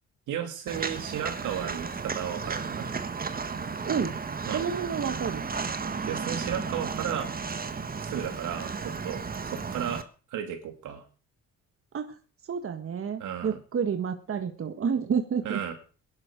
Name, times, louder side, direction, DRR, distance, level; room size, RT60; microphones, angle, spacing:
voice 1, 0.3-2.9 4.5-4.7 6.0-7.4 8.0-10.0 10.3-11.0 13.2-13.6 15.4-15.7, right 9 dB, 85° right, 5 dB, 2.7 m, -34 dB
Walk footsteps, 0.7-10.0, right 5 dB, 30° right, 1.4 m, -34 dB
voice 2, 3.8-4.1 4.5-5.5 11.9-12.1 12.5-15.6, right 6 dB, 45° right, 7 dB, 1.6 m, -29 dB
17.5 x 11.5 x 5.2 m, 0.38 s
cardioid pair, 90°, 30 cm